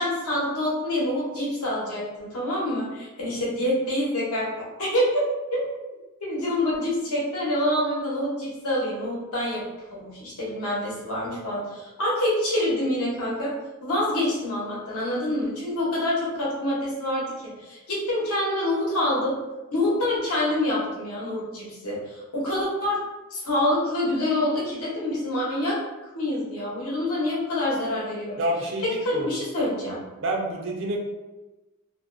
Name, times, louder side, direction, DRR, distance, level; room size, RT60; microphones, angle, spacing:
voice 1, 0.0-4.5 4.8-5.2 5.5-5.6 6.2-9.6 9.9-13.5 13.8-17.3 17.6-19.3 19.7-23.0 23.3-25.8 26.1-28.4 28.8-30.0, left 1 dB, 90° left, -6 dB, 0.9 m, -26 dB
voice 2, 28.4-29.3 30.2-31.0, right 1 dB, 55° right, 0 dB, 0.4 m, -28 dB
2.3 x 2.1 x 2.4 m, 1.1 s
head